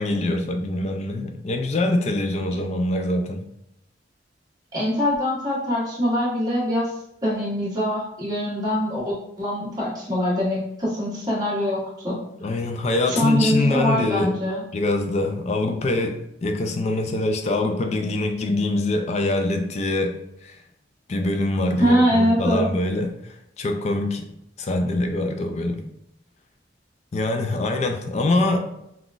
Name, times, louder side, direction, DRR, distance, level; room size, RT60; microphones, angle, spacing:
voice 1, 0.0-3.4 12.4-14.3 14.7-20.6 21.1-23.2 23.6-24.3 24.6-25.8 27.1-28.7, left 2 dB, 40° left, 5 dB, 0.4 m, -24 dB
voice 2, 4.7-6.9 7.2-12.2 13.1-14.6 21.8-22.7, equal, 20° right, -8 dB, 1.1 m, -23 dB
3.6 x 2.3 x 2.4 m, 0.80 s
head